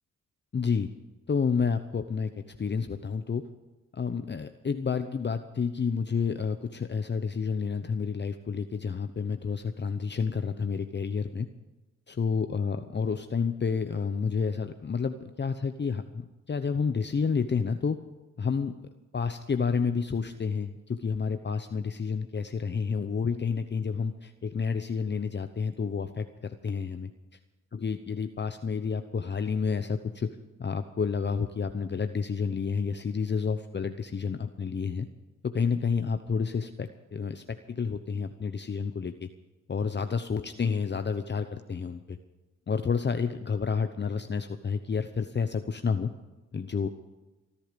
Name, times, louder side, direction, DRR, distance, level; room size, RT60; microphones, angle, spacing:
voice 1, 0.5-0.9 1.3-3.5 3.9-11.5 12.1-18.0 18.4-18.8 19.1-27.1 27.7-35.1 35.4-39.3 39.7-42.2 42.7-46.1 46.5-46.9, left 5 dB, 35° left, 8 dB, 0.9 m, -30 dB
24.5 x 11.5 x 5.2 m, 1.1 s
cardioid pair, 70°, 31 cm